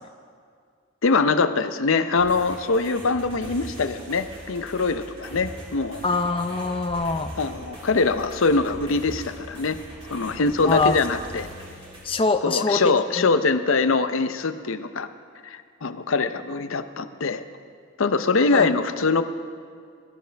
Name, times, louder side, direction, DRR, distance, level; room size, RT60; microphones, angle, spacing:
voice 1, 1.0-6.0 7.4-9.8 10.1-11.5 12.4-15.1 15.4-17.4 18.0-19.2, left 4 dB, 65° left, 11 dB, 0.7 m, -23 dB
sound 1, 2.1-12.0, equal, 25° right, 3.4 m, -41 dB
voice 2, 6.0-7.3 10.6-11.0 12.0-12.8 13.2-13.3 18.5-18.7, left 3 dB, 25° left, 7 dB, 0.5 m, -23 dB
22.5 x 13.0 x 3.4 m, 2.1 s
head